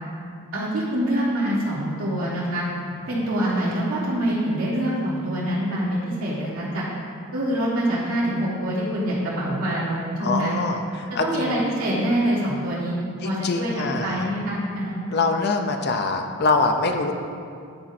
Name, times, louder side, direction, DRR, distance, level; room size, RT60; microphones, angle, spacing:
voice 1, 0.5-2.6 3.1-6.8 7.3-10.6 11.2-15.0, right 1 dB, 75° right, -8 dB, 1.4 m, -25 dB
voice 2, 10.2-11.6 13.2-14.2 15.1-17.1, left 3 dB, 50° left, 5 dB, 0.5 m, -24 dB
9.6 x 4.3 x 4.2 m, 2.3 s
head